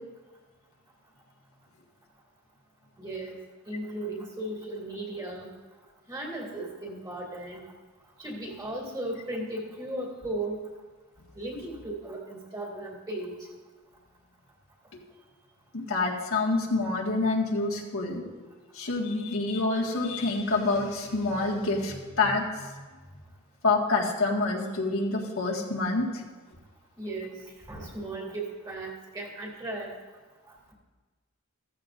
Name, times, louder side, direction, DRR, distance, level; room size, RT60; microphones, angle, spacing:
voice 1, 3.0-3.4 3.7-5.5 6.1-7.7 8.2-10.6 11.3-13.3 27.0-27.4 27.7-30.0, right 1 dB, 20° right, -1 dB, 2.6 m, -36 dB
voice 2, 15.7-18.2 18.7-22.7 23.6-26.2, left 3 dB, 70° left, -2 dB, 1.8 m, -27 dB
14.5 x 14.5 x 2.6 m, 1.3 s
head